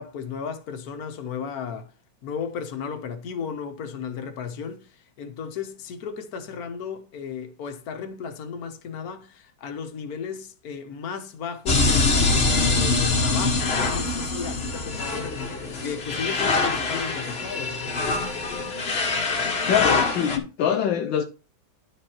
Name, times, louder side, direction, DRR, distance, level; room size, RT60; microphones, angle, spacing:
voice 1, 0.0-1.9 2.2-17.8, left 6 dB, 50° left, 1.5 m, -34 dB
sound 1, 11.7-20.4, left 3 dB, 35° left, 1.3 m, -24 dB
voice 2, 19.7-21.3, left 9 dB, 70° left, 1.4 m, -23 dB
11.0 x 5.2 x 4.4 m
omnidirectional pair, 2.2 m